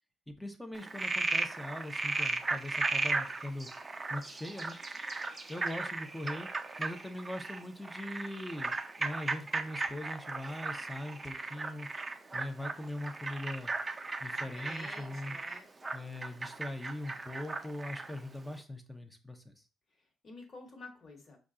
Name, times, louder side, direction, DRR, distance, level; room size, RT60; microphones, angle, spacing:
voice 1, 0.3-3.7 4.1-4.8 5.5-6.5 6.8-11.9 12.3-13.7 14.2-15.4 15.9-19.6, left 1 dB, 5° left, 5 dB, 0.8 m, -41 dB
Frog, 0.7-18.2, right 3 dB, 25° right, 0.5 m, -36 dB
voice 2, 14.3-15.7 20.2-21.4, left 3 dB, 45° left, 2 dB, 1.5 m, -50 dB
5.1 x 2.4 x 3.7 m, 0.35 s
cardioid pair, 90°, 0 cm